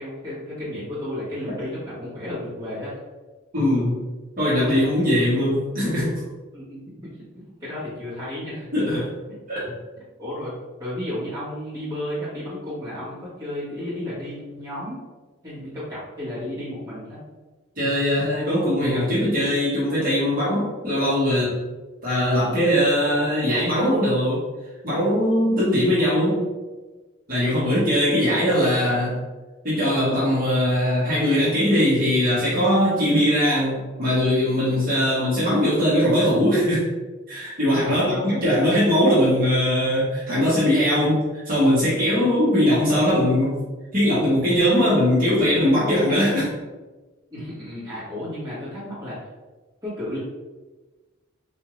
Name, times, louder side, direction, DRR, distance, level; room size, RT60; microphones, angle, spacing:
voice 1, 0.0-2.9 6.5-8.8 9.3-9.4 10.2-10.5 10.8-15.0 15.4-17.2 37.8-38.4 47.3-49.2 49.8-50.2, left 1 dB, 15° right, -11 dB, 1.5 m, -33 dB
voice 2, 3.5-4.0 4.4-6.1 8.7-9.0 9.5-9.7 17.8-21.5 22.0-24.4 24.8-26.4 27.3-29.2 29.6-36.8 37.3-43.7 43.9-46.5, equal, 45° right, -9 dB, 1.3 m, -20 dB
3.6 x 2.7 x 3.1 m, 1.2 s
head